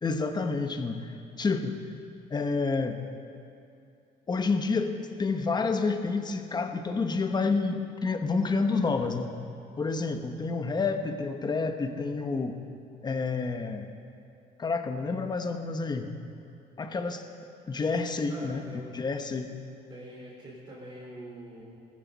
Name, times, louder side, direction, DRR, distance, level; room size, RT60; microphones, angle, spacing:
voice 1, 0.0-1.8 2.3-3.0 4.3-9.3 9.8-12.6 13.0-13.9 14.6-16.1 16.8-17.2 17.7-18.6 18.9-19.5, left 4 dB, 25° left, 7 dB, 1.1 m, -29 dB
voice 2, 18.3-18.9 19.9-21.6, right 1 dB, 25° right, -8 dB, 4.3 m, -44 dB
19.5 x 15.0 x 4.2 m, 2.6 s
cardioid pair, 110°, 17 cm